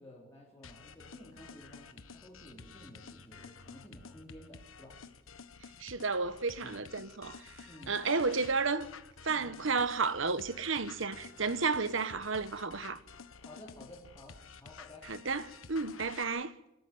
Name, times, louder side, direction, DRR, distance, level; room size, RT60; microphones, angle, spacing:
voice 1, 0.0-5.0 6.6-6.8 7.6-8.5 9.3-9.7 13.4-15.1, left 1 dB, 15° left, 4.2 m, -53 dB
sound 1, 0.6-16.2, left 5 dB, 85° left, 1.4 m, -51 dB
voice 2, 5.8-7.4 7.9-8.9 9.2-13.0 15.1-15.4 15.7-16.5, right 4 dB, 70° right, 1.2 m, -32 dB
25.5 x 13.0 x 9.5 m
head